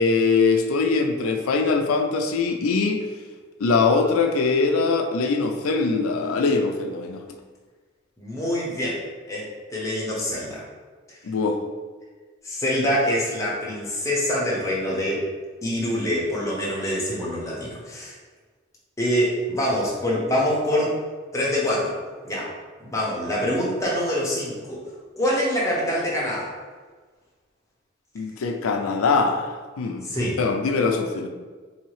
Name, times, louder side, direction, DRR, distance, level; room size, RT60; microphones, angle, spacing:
voice 1, 0.0-3.0 3.6-7.2 11.2-11.6 28.1-30.1 30.4-31.3, left 4 dB, 85° left, 4 dB, 0.4 m, -22 dB
voice 2, 8.2-9.0 9.3-10.6 12.4-15.2 15.6-18.1 19.0-21.0 21.3-22.0 22.2-22.5 22.8-24.8 25.2-26.5 30.0-30.4, equal, 15° left, -5 dB, 0.8 m, -25 dB
4.0 x 2.7 x 3.1 m, 1.4 s
head